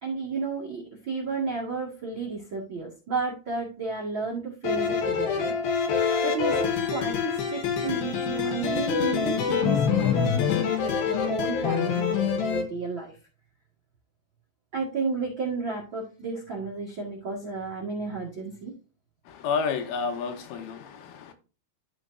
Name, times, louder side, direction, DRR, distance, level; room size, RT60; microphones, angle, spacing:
voice 1, 0.0-5.5 6.2-13.1 14.7-18.7, right 4 dB, 55° right, 1.3 m, -32 dB
sound 1, 4.6-12.7, left 7 dB, 65° left, 2.6 m, -26 dB
voice 2, 19.3-21.3, left 5 dB, 85° left, 3.6 m, -30 dB
13.0 x 4.5 x 2.6 m
omnidirectional pair, 5.5 m